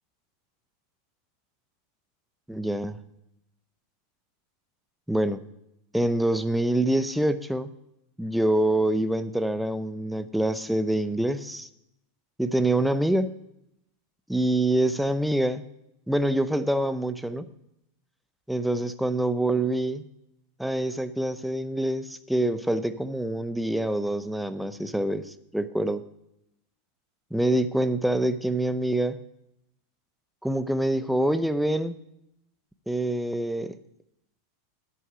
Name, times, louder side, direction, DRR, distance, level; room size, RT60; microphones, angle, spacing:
voice 1, 2.5-3.0 5.1-5.4 5.9-7.7 8.2-11.7 12.4-13.3 14.3-15.6 16.1-17.5 18.5-20.0 20.6-26.0 27.3-29.2 30.4-32.0 32.9-33.7, right 1 dB, ahead, 11 dB, 0.6 m, -25 dB
11.0 x 8.4 x 4.9 m, 0.82 s
supercardioid pair, 125°, 0 cm